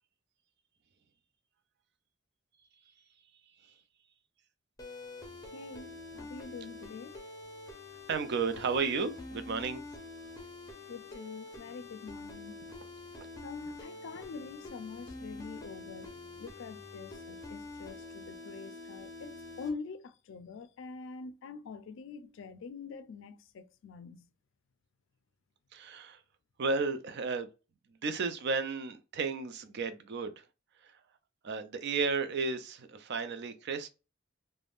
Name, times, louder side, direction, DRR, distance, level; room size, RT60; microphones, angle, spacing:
sound 1, 4.8-19.7, left 2 dB, 15° left, 0.7 m, -46 dB
voice 1, 5.5-7.2 10.9-12.6 13.4-24.3, left 4 dB, 70° left, 0.4 m, -45 dB
voice 2, 8.1-9.8 25.7-26.2 26.6-27.5 28.0-30.4 31.4-33.9, right 4 dB, 60° right, 0.4 m, -33 dB
3.4 x 2.1 x 2.4 m
head